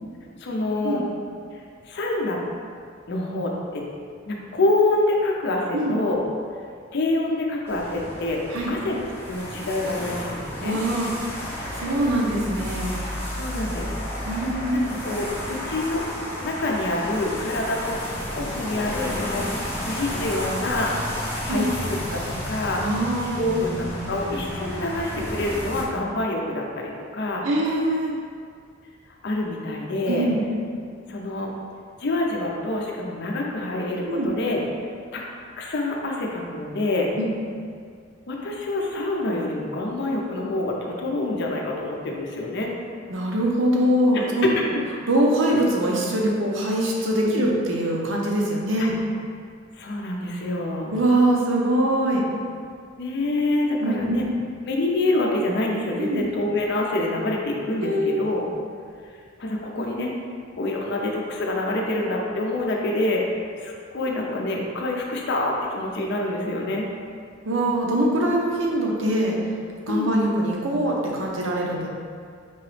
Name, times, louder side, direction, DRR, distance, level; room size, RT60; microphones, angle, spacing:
voice 1, 0.4-1.0 1.9-2.4 3.1-3.9 4.2-6.2 6.9-8.4 8.7-10.8 13.4-14.0 14.7-16.1 16.4-18.0 18.4-20.9 21.4-22.8 23.2-27.5 29.2-30.3 31.1-31.5 32.0-34.6 35.1-35.2 35.6-37.1 38.3-42.7 44.1-44.6 45.5-45.6 47.3-47.5 48.8-48.9 49.8-51.0 53.0-54.3 54.7-58.4 59.4-60.1 60.6-63.2 63.6-66.9 69.9-70.2, left 2 dB, 60° left, -1 dB, 0.5 m, -26 dB
sound 1, 7.7-25.8, equal, 10° left, 0.6 m, -32 dB
voice 2, 10.6-11.1 11.7-13.0 14.2-15.0 21.5-21.7 22.8-23.7 27.4-28.1 30.1-30.5 34.1-34.3 37.2-37.3 43.1-44.5 45.1-49.0 50.9-52.2 53.8-54.2 56.0-56.2 57.8-58.2 67.4-69.4 69.9-71.9, right 1 dB, 70° right, -2 dB, 0.7 m, -23 dB
4.6 x 2.9 x 3.2 m, 2.1 s
head